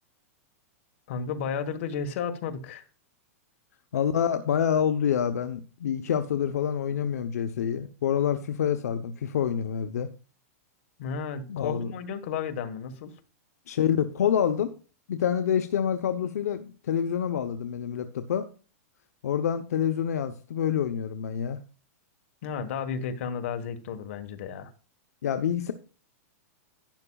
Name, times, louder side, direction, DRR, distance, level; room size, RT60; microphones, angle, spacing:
voice 1, 1.1-2.8 11.0-13.1 22.4-24.7, left 6 dB, 60° left, 7 dB, 1.4 m, -33 dB
voice 2, 3.9-10.1 11.5-11.9 13.7-14.7 15.1-18.5 19.2-21.6 25.2-25.7, left 8 dB, 85° left, 8 dB, 0.8 m, -27 dB
12.0 x 9.9 x 2.3 m, 0.37 s
supercardioid pair, 150°, 8 cm